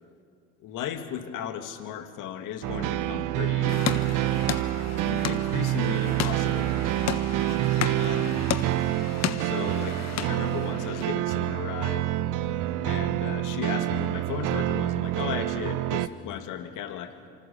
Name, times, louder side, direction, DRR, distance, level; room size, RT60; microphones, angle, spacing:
voice 1, 0.6-3.8 5.0-6.7 8.0-8.5 9.4-10.0 10.3-12.1 12.8-17.1, left 9 dB, 65° left, 7 dB, 2.4 m, -36 dB
sound 1, 2.6-16.1, right 14 dB, 65° right, 1.1 m, -27 dB
sound 2, 3.7-11.1, left 9 dB, 50° left, 1.5 m, -34 dB
26.5 x 25.5 x 7.0 m, 2.3 s
supercardioid pair, 80°, 34 cm